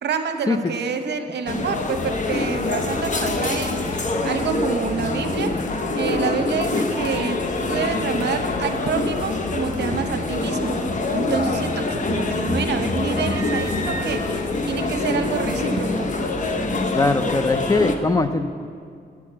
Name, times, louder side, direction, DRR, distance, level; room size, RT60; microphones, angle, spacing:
voice 1, 0.0-10.8 11.1-16.1, right 5 dB, 70° right, 6 dB, 0.8 m, -28 dB
sound 1, 1.5-18.0, left 2 dB, 45° left, 0.8 m, -25 dB
voice 2, 16.9-18.5, left 3 dB, 20° left, 10 dB, 0.4 m, -21 dB
9.4 x 6.5 x 7.4 m, 2.2 s
cardioid pair, 100°, 18 cm